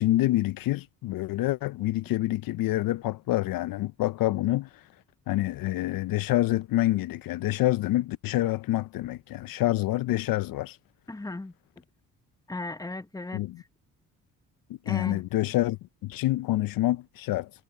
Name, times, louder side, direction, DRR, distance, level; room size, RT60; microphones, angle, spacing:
voice 1, 0.0-4.9 5.3-10.8 13.3-13.6 14.7-17.5, left 16 dB, 65° left, 0.5 m, -27 dB
voice 2, 11.1-11.5 12.5-13.7 14.8-15.3, left 2 dB, 10° left, 1.0 m, -36 dB
supercardioid pair, 65°, 37 cm